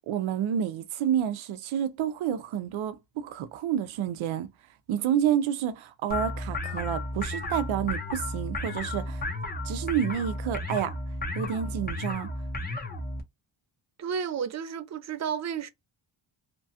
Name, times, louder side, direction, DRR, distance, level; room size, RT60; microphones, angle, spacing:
voice 1, 0.1-4.5 4.9-9.2 9.6-10.9 11.3-12.3, right 9 dB, 75° right, 0.6 m, -29 dB
sound 1, 6.1-13.2, left 2 dB, 20° left, 0.7 m, -33 dB
voice 2, 14.0-15.7, right 7 dB, 35° right, 0.4 m, -32 dB
2.9 x 2.3 x 2.7 m
cardioid pair, 130°, 47 cm